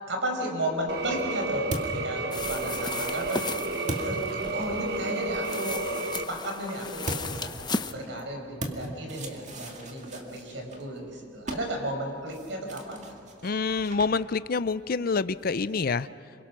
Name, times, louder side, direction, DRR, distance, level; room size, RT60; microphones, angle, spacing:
voice 1, 0.1-3.4 4.0-7.5 7.9-13.0 13.5-13.6, right 1 dB, 75° right, 2 dB, 5.3 m, -34 dB
sound 1, 0.6-5.0 7.0-15.9, right 1 dB, 40° right, 2.2 m, -41 dB
sound 2, 0.9-6.2, right 3 dB, 60° right, 1.1 m, -32 dB
sound 3, 2.3-7.9, left 4 dB, 25° left, 0.8 m, -36 dB
voice 2, 13.4-16.1, left 4 dB, 50° left, 15 dB, 0.5 m, -27 dB
27.0 x 23.0 x 6.2 m, 2.5 s
head